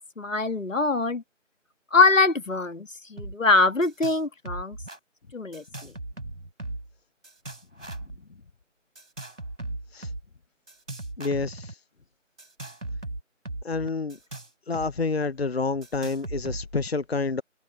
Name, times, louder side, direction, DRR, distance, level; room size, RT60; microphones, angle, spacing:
voice 1, 0.2-1.2 1.9-4.8 5.3-5.9, left 3 dB, 80° left, 1.8 m, -23 dB
sound 1, 3.2-3.3 3.6-4.2 4.5-5.0 5.5-6.9 7.2-8.2 9.0-10.2 10.7-11.7 12.4-14.9 15.2-15.3 15.8-16.9, right 2 dB, 80° right, 4.6 m, -37 dB
voice 2, 11.2-11.8 13.6-14.2 14.7-17.4, left 4 dB, 50° left, 1.0 m, -28 dB
open air
figure-of-eight pair, 165°, 38 cm